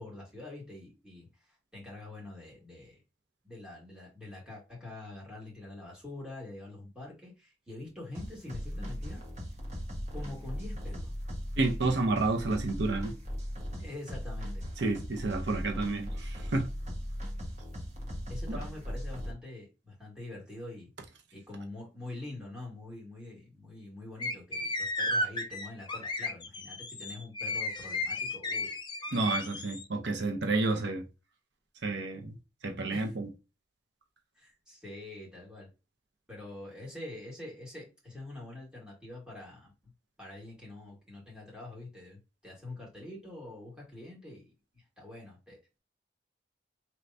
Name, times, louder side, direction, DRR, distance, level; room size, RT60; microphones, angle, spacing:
voice 1, 0.0-3.0 3.4-9.2 10.1-11.1 13.8-14.7 16.8-16.9 18.3-20.9 21.3-28.7 32.9-33.1 34.4-35.7 36.3-39.7 40.2-45.6, left 2 dB, 5° right, 1.8 m, -45 dB
sound 1, 8.1-19.3, equal, 40° right, 1.3 m, -38 dB
voice 2, 11.6-13.2 14.8-16.7 18.5-18.6 29.1-31.0 31.8-32.3 32.6-33.3, right 3 dB, 75° right, 0.7 m, -30 dB
sound 2, 24.2-29.8, left 2 dB, 25° left, 0.5 m, -34 dB
4.5 x 3.3 x 2.6 m
head